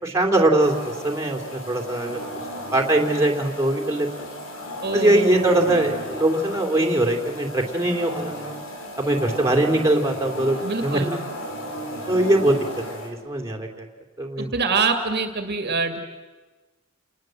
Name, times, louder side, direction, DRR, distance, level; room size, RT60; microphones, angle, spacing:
voice 1, 0.0-2.3 2.7-4.3 4.9-8.5 9.0-10.6 10.8-11.2 12.1-12.6 12.9-13.8 14.2-14.5, right 1 dB, 15° right, 1 dB, 3.0 m, -22 dB
sound 1, 0.6-13.1, equal, 80° left, 5.4 m, -35 dB
voice 2, 4.8-5.9 10.6-11.2 14.4-16.0, right 4 dB, 55° right, 6 dB, 2.2 m, -25 dB
30.0 x 20.0 x 7.7 m, 1.2 s
head